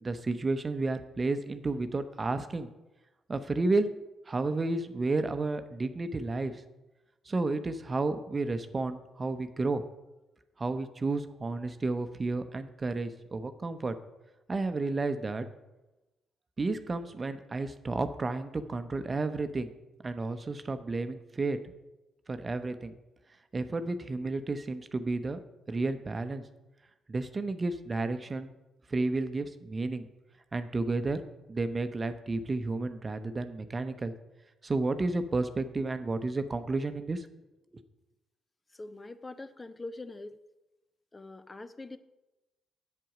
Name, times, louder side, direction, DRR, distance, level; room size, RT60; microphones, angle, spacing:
voice 1, 0.0-2.7 3.3-3.9 4.3-6.6 7.3-9.8 10.6-13.9 14.5-15.5 16.6-19.7 20.0-21.6 22.3-22.9 23.5-25.4 25.7-26.4 27.1-28.5 28.9-30.1 30.5-31.2 31.5-34.1 34.6-37.3, right 3 dB, 35° right, 10 dB, 0.8 m, -31 dB
voice 2, 38.7-40.4 41.1-42.0, left 2 dB, 25° left, 11 dB, 0.6 m, -43 dB
7.8 x 7.7 x 5.0 m, 1.0 s
hypercardioid pair, 45°, 0 cm